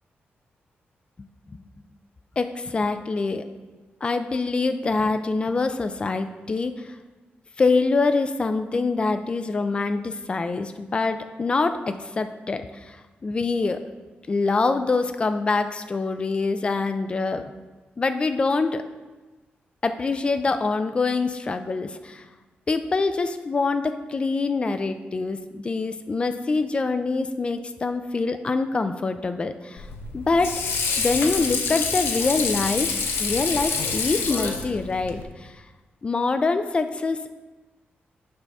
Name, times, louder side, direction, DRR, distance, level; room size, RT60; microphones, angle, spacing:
voice 1, 2.4-3.4 4.0-6.9 7.6-13.0 13.2-13.8 14.3-17.4 18.0-18.8 19.8-22.3 22.7-29.9 30.1-30.5 31.0-32.9 33.2-35.6 36.0-37.2, left 3 dB, 25° left, 9 dB, 0.4 m, -25 dB
Water / Sink (filling or washing), 29.8-35.2, left 5 dB, 80° left, 0.8 m, -27 dB
9.4 x 5.5 x 3.5 m, 1.2 s
wide cardioid pair, 145°, 4 cm